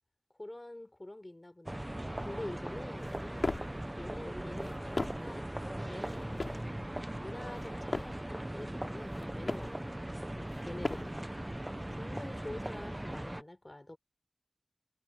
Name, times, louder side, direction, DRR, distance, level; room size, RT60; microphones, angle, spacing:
voice 1, 0.4-1.9 2.2-3.6 4.0-5.5 5.9-6.8 7.2-11.2 11.9-14.0, left 1 dB, 30° left, 4.6 m, -46 dB
sound 1, 1.7-13.4, right 1 dB, 20° right, 0.6 m, -39 dB
sound 2, 3.0-3.8 4.5-5.4 6.0-6.7 7.4-8.3 9.0-9.8 10.5-11.3, left 3 dB, 70° left, 3.1 m, -39 dB
wide cardioid pair, 65°, 0 cm